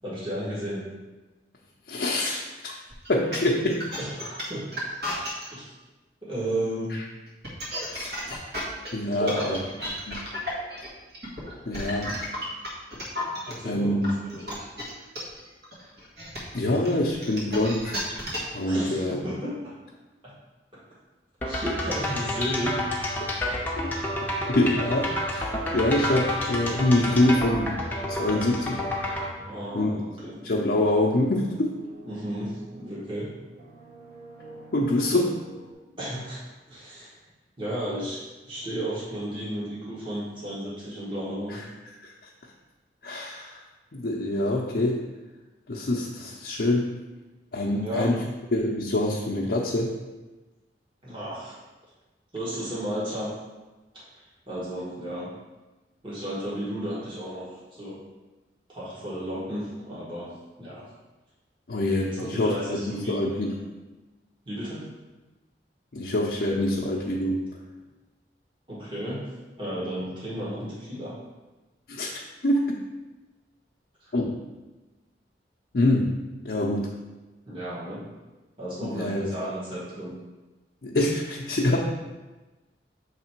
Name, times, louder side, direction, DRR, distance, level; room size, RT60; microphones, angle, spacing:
voice 1, 0.0-0.8 4.0-4.7 5.5-5.7 6.2-6.9 9.0-9.6 13.5-13.9 14.3-14.7 18.6-19.7 20.2-20.3 21.5-22.7 29.4-30.4 32.0-33.3 36.0-37.1 37.6-38.2 38.5-41.6 47.7-48.1 51.0-51.6 52.3-53.3 53.9-55.3 56.0-58.0 58.7-60.3 60.6-60.9 62.0-63.2 64.4-64.8 68.7-69.3 69.6-71.2 74.0-74.1 77.5-78.0 78.6-80.1, equal, 30° right, -8 dB, 1.5 m, -33 dB
voice 2, 1.9-2.8 3.1-3.9 6.9-7.0 7.9-8.4 8.9-9.6 10.1-10.3 11.6-12.2 13.6-14.1 16.5-18.0 18.5-19.2 23.4-23.8 24.6-27.8 28.1-28.8 29.7-29.9 30.4-31.7 34.7-35.4 41.5-41.6 42.0-42.1 43.0-43.6 43.9-45.0 45.7-46.9 47.5-48.2 48.5-50.0 61.7-63.5 65.9-67.5 71.9-72.1 72.4-72.8 74.1-74.4 75.7-77.0 78.8-79.3 80.8-81.9, left 1 dB, 60° left, -3 dB, 0.6 m, -25 dB
sound 1, 2.9-5.4 7.3-13.5 14.0-18.6, left 1 dB, 65° right, 1.6 m, -33 dB
sound 2, 21.4-29.3, left 1 dB, 10° left, 0.7 m, -29 dB
sound 3, 26.4-33.1 33.5-35.7, right 2 dB, 45° right, 1.2 m, -48 dB
6.5 x 3.3 x 4.5 m, 1.1 s
head